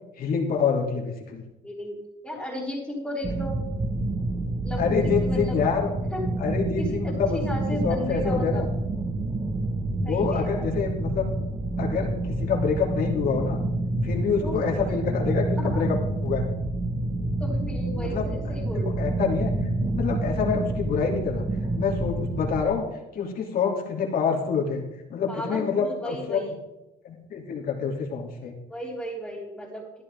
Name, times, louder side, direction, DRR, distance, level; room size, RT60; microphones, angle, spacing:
voice 1, 0.2-1.4 4.8-5.9 6.4-7.4 7.7-8.7 9.9-11.3 11.8-13.6 14.0-16.5 18.0-18.2 18.7-19.5 19.8-21.4 21.7-22.8 23.1-24.8 25.1-26.5 27.0-28.5, left 6 dB, 60° left, 0 dB, 3.0 m, -27 dB
voice 2, 1.6-2.0 2.2-3.6 4.6-5.6 6.1-6.2 6.8-8.7 10.0-10.7 14.4-14.6 15.6-15.8 17.4-19.0 25.3-26.5 28.7-29.8, equal, ahead, -7 dB, 3.5 m, -34 dB
sound 1, 3.2-22.6, right 2 dB, 25° right, 1.2 m, -28 dB
13.5 x 11.0 x 3.7 m, 0.98 s
cardioid pair, 110°, 17 cm